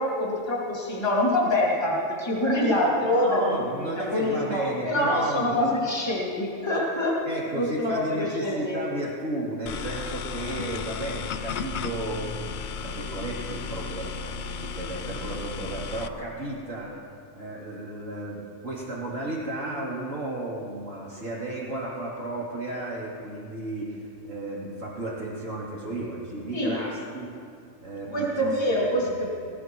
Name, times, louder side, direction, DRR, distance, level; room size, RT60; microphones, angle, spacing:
voice 1, 0.0-7.2 7.5-8.8 26.5-26.8 28.1-29.3, left 1 dB, 20° left, -5 dB, 2.6 m, -25 dB
voice 2, 3.1-5.6 7.3-17.0 17.3-27.3 27.8-28.5 28.9-29.3, right 1 dB, 60° right, -5 dB, 3.5 m, -33 dB
sound 1, 9.7-16.1, left 6 dB, 75° left, 0.4 m, -34 dB
19.5 x 17.5 x 3.1 m, 2.5 s
omnidirectional pair, 1.5 m